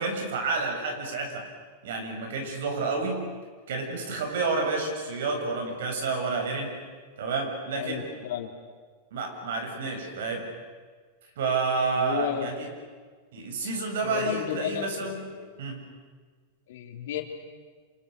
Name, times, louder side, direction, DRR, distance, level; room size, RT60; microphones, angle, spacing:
voice 1, 0.0-1.5 1.8-3.2 3.7-6.7 7.2-8.0 9.1-10.4 11.4-12.7 13.3-15.2 15.6-15.8, right 4 dB, 70° right, 3 dB, 7.4 m, -29 dB
voice 2, 7.8-8.5 12.0-12.6 14.0-15.6 16.7-17.2, left 10 dB, 65° left, 4 dB, 3.5 m, -33 dB
29.5 x 26.5 x 6.8 m, 1.5 s
supercardioid pair, 170°, 0 cm